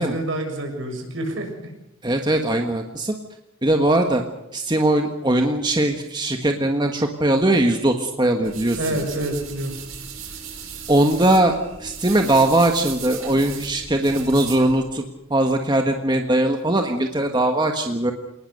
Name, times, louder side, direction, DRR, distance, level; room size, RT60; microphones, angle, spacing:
voice 1, 0.0-1.7 8.8-9.7, right 1 dB, 65° right, 3 dB, 7.0 m, -27 dB
voice 2, 2.0-3.1 3.6-4.2 4.5-8.8 10.9-15.0 15.3-18.1, right 1 dB, 20° right, 4 dB, 1.5 m, -20 dB
sound 1, 8.4-14.9, right 7 dB, 80° right, 5.5 m, -37 dB
28.0 x 19.5 x 6.7 m, 0.86 s
head